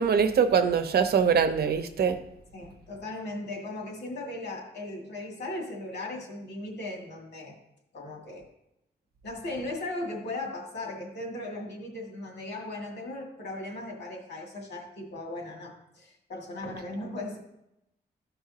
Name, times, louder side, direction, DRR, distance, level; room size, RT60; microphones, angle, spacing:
voice 1, 0.0-2.2, right 6 dB, 65° right, 9 dB, 0.7 m, -23 dB
voice 2, 2.5-7.5 7.9-8.4 9.2-17.4, left 2 dB, 80° left, -1 dB, 2.2 m, -37 dB
13.5 x 5.4 x 2.9 m, 0.84 s
wide cardioid pair, 145°, 17 cm